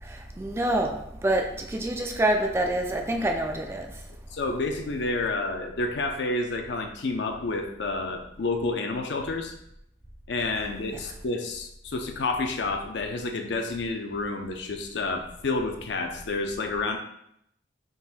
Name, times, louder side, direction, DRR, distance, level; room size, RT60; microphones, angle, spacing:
voice 1, 0.0-3.9 10.9-11.1, right 1 dB, 15° right, 3 dB, 0.3 m, -27 dB
voice 2, 4.3-9.5 10.3-17.0, left 3 dB, 65° left, 4 dB, 0.5 m, -29 dB
3.8 x 2.6 x 4.1 m, 0.75 s
head